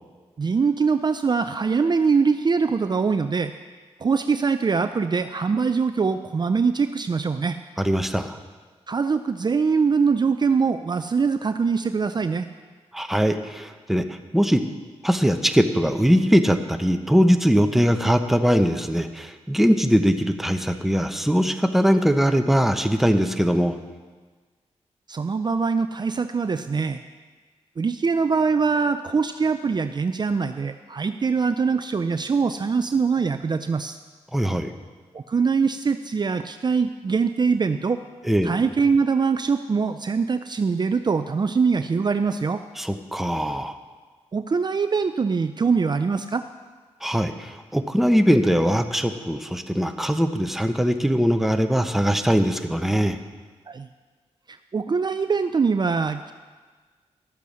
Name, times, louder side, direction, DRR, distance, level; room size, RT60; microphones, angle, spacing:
voice 1, 0.4-3.5 4.0-7.6 8.9-12.5 25.1-27.0 27.8-34.0 35.1-38.0 38.4-42.6 44.3-46.4 53.7-53.9 54.5-56.3, right 5 dB, 40° right, 10 dB, 0.5 m, -23 dB
voice 2, 7.8-8.4 12.9-14.6 15.0-23.8 34.3-34.7 38.2-38.5 42.8-43.7 47.0-53.2, equal, ahead, 7 dB, 0.9 m, -21 dB
12.5 x 8.4 x 6.4 m, 1.4 s
cardioid pair, 60°, 12 cm